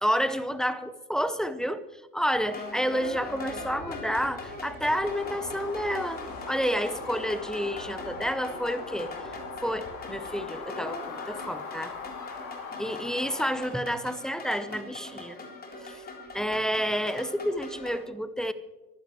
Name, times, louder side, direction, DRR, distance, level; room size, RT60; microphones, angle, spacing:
voice 1, 0.0-1.8 2.1-11.9 12.8-15.4 15.8-16.0 16.3-18.5, equal, ahead, 14 dB, 0.8 m, -30 dB
sound 1, 2.3-18.0, left 2 dB, 20° left, 3.7 m, -41 dB
sound 2, 4.9-13.7, left 5 dB, 55° left, 6.0 m, -41 dB
23.5 x 15.0 x 3.2 m, 1.1 s
figure-of-eight pair, 80°, 45 cm